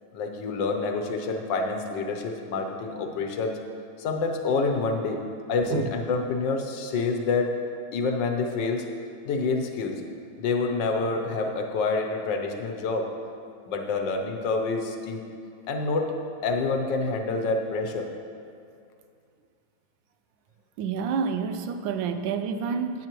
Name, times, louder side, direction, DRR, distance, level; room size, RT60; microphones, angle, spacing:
voice 1, 0.1-3.6 4.0-5.2 5.5-7.5 7.9-8.8 9.2-10.0 10.4-13.1 13.7-15.2 15.7-16.1 16.4-18.1, left 3 dB, 65° left, 4 dB, 1.4 m, -27 dB
voice 2, 20.8-23.1, right 6 dB, 75° right, 8 dB, 1.2 m, -28 dB
13.5 x 9.0 x 3.1 m, 2.4 s
omnidirectional pair, 2.3 m